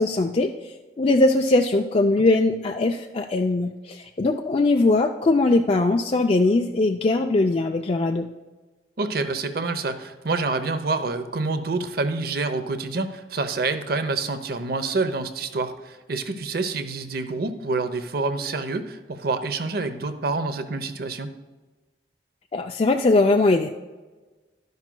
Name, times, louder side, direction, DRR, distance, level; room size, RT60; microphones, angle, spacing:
voice 1, 0.0-8.3 22.5-23.7, left 2 dB, 35° left, 3 dB, 0.4 m, -21 dB
voice 2, 9.0-21.3, right 3 dB, 55° right, 10 dB, 0.7 m, -27 dB
12.0 x 10.5 x 2.2 m, 1.2 s
head